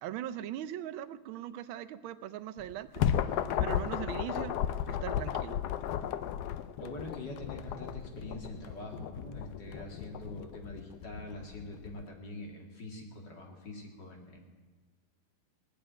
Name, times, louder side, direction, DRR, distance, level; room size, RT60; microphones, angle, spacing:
voice 1, 0.0-4.6 4.9-5.6, right 11 dB, 75° right, 10 dB, 1.5 m, -40 dB
sound 1, 2.6-12.0, left 10 dB, 75° left, 0.9 m, -34 dB
voice 2, 6.8-14.4, left 1 dB, 55° left, 1 dB, 2.8 m, -44 dB
18.5 x 7.2 x 9.9 m, 1.4 s
omnidirectional pair, 2.3 m